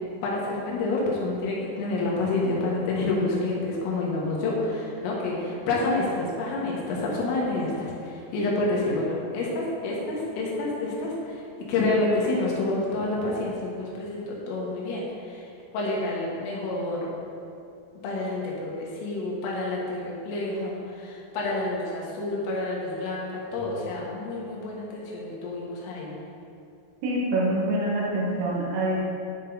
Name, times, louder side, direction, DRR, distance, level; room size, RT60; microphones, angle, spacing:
voice 1, 0.2-17.2 18.0-26.2, left 2 dB, 80° left, -4 dB, 4.2 m, -28 dB
voice 2, 27.0-29.0, right 1 dB, 90° right, -5 dB, 4.5 m, -25 dB
11.5 x 5.7 x 4.0 m, 2.6 s
omnidirectional pair, 5.8 m